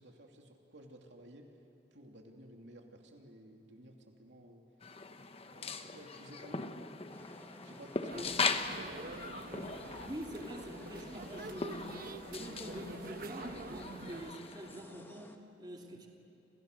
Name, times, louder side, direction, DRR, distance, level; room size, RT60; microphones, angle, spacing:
voice 1, 0.0-1.5 1.9-4.6 5.5-6.8 7.6-8.5, right 1 dB, 75° right, 2 dB, 2.8 m, -54 dB
sound 1, 4.8-14.8, left 4 dB, 35° left, 1.1 m, -40 dB
sound 2, 7.1-15.4, left 1 dB, 15° left, 1.8 m, -55 dB
sound 3, 8.1-14.3, right 3 dB, 55° right, 1.1 m, -46 dB
voice 2, 10.1-11.9 12.3-16.1, right 1 dB, 25° right, 0 dB, 2.7 m, -46 dB
30.0 x 28.0 x 6.8 m, 2.8 s
head